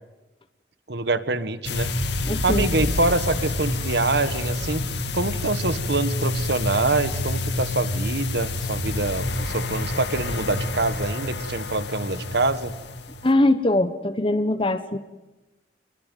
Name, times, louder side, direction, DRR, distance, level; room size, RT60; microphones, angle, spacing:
voice 1, 0.9-1.9 2.2-4.8 5.1-12.7, right 2 dB, 65° right, 13 dB, 1.6 m, -25 dB
sound 1, 1.6-13.3, left 2 dB, 70° left, 2.8 m, -28 dB
voice 2, 2.2-2.7 13.2-15.0, left 1 dB, 30° left, 10 dB, 1.2 m, -22 dB
29.5 x 21.0 x 9.3 m, 1.1 s
head